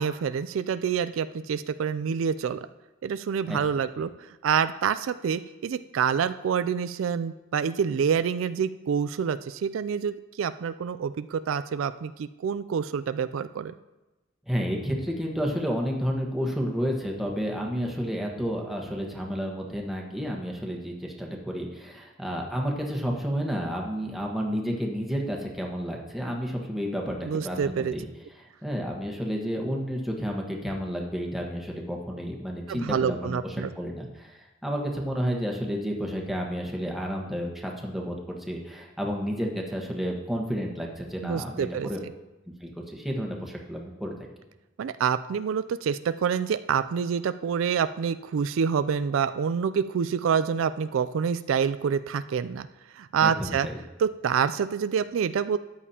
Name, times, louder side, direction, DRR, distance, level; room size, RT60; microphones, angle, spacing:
voice 1, 0.0-2.7 3.0-13.7 27.2-27.9 32.7-33.7 41.2-41.9 44.8-52.7 52.9-53.7 54.0-55.6, right 7 dB, 85° right, 13 dB, 0.4 m, -27 dB
voice 2, 14.5-28.0 28.4-42.0 42.6-44.1 53.2-53.8, equal, ahead, -1 dB, 1.3 m, -31 dB
13.0 x 9.0 x 2.9 m, 1.1 s
head